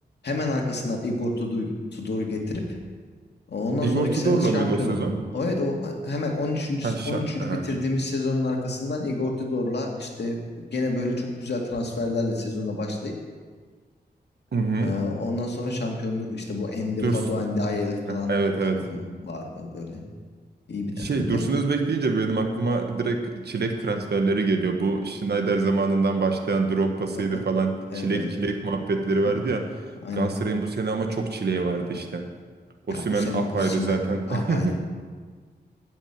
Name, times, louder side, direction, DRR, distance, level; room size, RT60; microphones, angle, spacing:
voice 1, 0.2-2.6 3.5-5.1 5.3-10.4 10.7-13.1 14.8-18.4 18.8-20.0 20.7-21.4 27.1-27.2 27.9-28.3 29.1-29.4 30.0-30.3 32.9-34.8, left 2 dB, 75° left, 0 dB, 2.2 m, -28 dB
voice 2, 3.8-5.2 6.8-7.7 14.5-14.9 17.0-17.2 18.1-18.8 20.9-29.6 30.1-32.3 32.9-34.7, right 3 dB, 70° right, 4 dB, 1.4 m, -25 dB
13.0 x 6.4 x 8.9 m, 1.5 s
wide cardioid pair, 120°, 18 cm